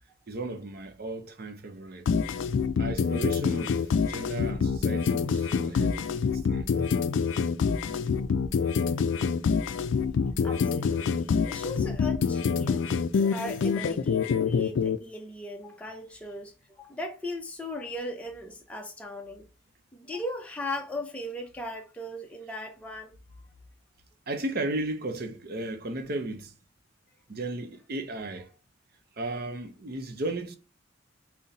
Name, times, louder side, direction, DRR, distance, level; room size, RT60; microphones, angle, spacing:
voice 1, 0.3-2.1 2.8-6.9 24.3-26.5 27.3-28.5 29.2-30.6, right 2 dB, 50° right, 0.6 m, -35 dB
sound 1, 2.1-15.0, left 5 dB, 65° left, 0.3 m, -26 dB
voice 2, 10.4-13.0 13.3-19.5 19.9-23.2, left 1 dB, 5° left, 0.6 m, -38 dB
3.9 x 2.1 x 4.0 m
head